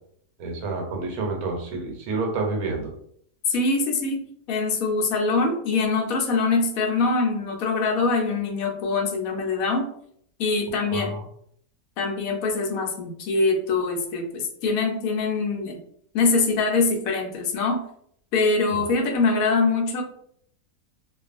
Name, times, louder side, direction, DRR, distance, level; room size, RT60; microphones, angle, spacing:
voice 1, 0.4-2.9 10.9-11.2 18.7-18.8, right 3 dB, 80° right, 1 dB, 1.2 m, -29 dB
voice 2, 3.5-9.9 10.4-11.1 12.0-15.8 16.1-17.8 18.3-20.0, left 3 dB, 75° left, 2 dB, 1.0 m, -23 dB
2.5 x 2.3 x 2.4 m, 0.66 s
omnidirectional pair, 1.5 m